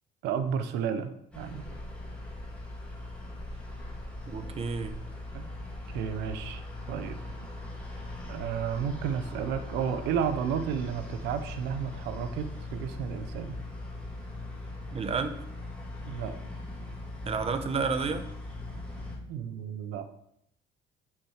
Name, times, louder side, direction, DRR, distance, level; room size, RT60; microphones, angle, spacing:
voice 1, 0.2-1.7 5.3-5.5 5.9-7.2 8.3-13.6 16.0-16.4 19.3-20.1, right 8 dB, 90° right, 10 dB, 0.8 m, -32 dB
sound 1, 1.3-19.1, left 2 dB, 5° left, 2.9 m, -40 dB
voice 2, 4.3-5.0 14.9-15.4 17.2-18.2, right 5 dB, 35° right, 9 dB, 0.9 m, -31 dB
7.5 x 6.1 x 4.9 m, 0.74 s
cardioid pair, 110°, 17 cm